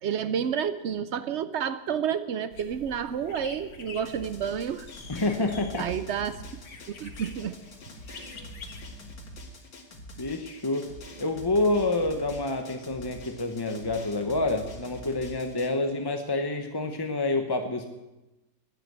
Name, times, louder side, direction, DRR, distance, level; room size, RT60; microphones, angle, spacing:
voice 1, 0.0-4.9 5.8-6.4 6.9-7.6 8.1-8.4, right 8 dB, 75° right, 12 dB, 0.6 m, -30 dB
sound 1, 2.5-9.1, left 4 dB, 65° left, 2.0 m, -47 dB
Drum, 4.0-15.7, equal, 90° left, 2.7 m, -45 dB
voice 2, 5.1-5.9 10.2-10.9 11.2-17.9, left 2 dB, 20° left, 5 dB, 0.6 m, -28 dB
14.0 x 10.5 x 8.1 m, 1.0 s
omnidirectional pair, 1.9 m